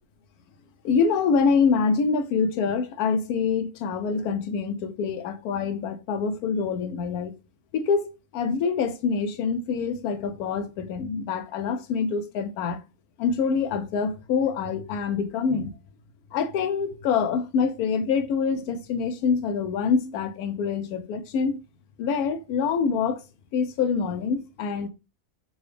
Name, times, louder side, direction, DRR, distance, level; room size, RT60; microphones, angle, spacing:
voice 1, 0.8-7.3 7.7-8.1 8.3-12.8 13.2-15.8 16.3-21.6 22.0-23.2 23.5-24.9, left 5 dB, 80° left, 1.1 m, -25 dB
3.9 x 2.3 x 3.2 m
omnidirectional pair, 1.6 m